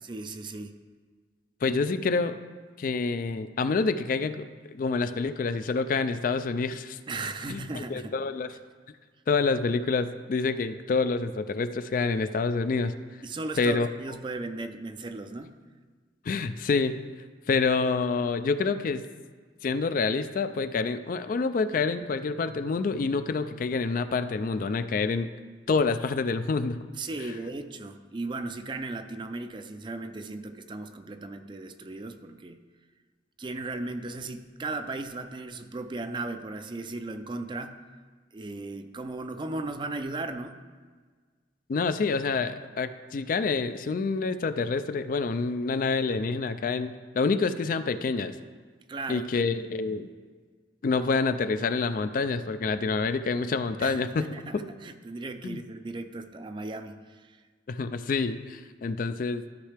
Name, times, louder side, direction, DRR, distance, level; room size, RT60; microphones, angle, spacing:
voice 1, 0.0-0.8 7.1-8.2 13.2-15.5 27.0-32.6 33.4-37.8 38.3-40.6 48.9-49.3 53.8-57.4, right 2 dB, 25° right, 8 dB, 0.4 m, -36 dB
voice 2, 1.6-2.4 2.8-7.0 7.5-8.5 9.3-12.9 13.6-13.9 16.3-16.9 17.5-19.0 19.6-25.3 25.7-26.8 41.7-48.4 49.1-50.1 50.8-54.2 54.5-54.6 55.4-55.6 57.7-59.4, left 4 dB, 50° left, 11 dB, 0.3 m, -27 dB
13.0 x 5.5 x 3.4 m, 1.5 s
head